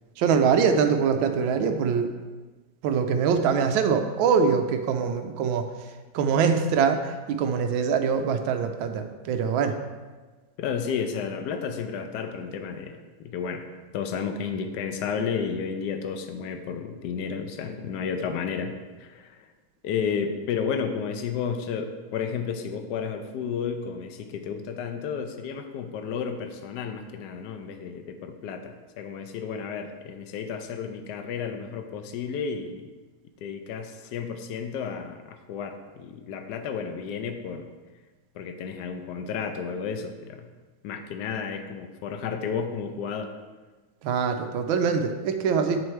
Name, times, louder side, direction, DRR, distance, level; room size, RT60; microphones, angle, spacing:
voice 1, 0.2-2.1 2.8-5.6 6.1-9.8 44.0-45.8, right 6 dB, 80° right, 6 dB, 1.4 m, -23 dB
voice 2, 10.6-13.0 13.2-13.6 13.9-19.5 19.8-32.9 33.4-37.7 38.3-40.5 40.8-43.3, left 6 dB, 65° left, 7 dB, 1.1 m, -32 dB
7.7 x 7.6 x 3.2 m, 1.3 s
omnidirectional pair, 2.2 m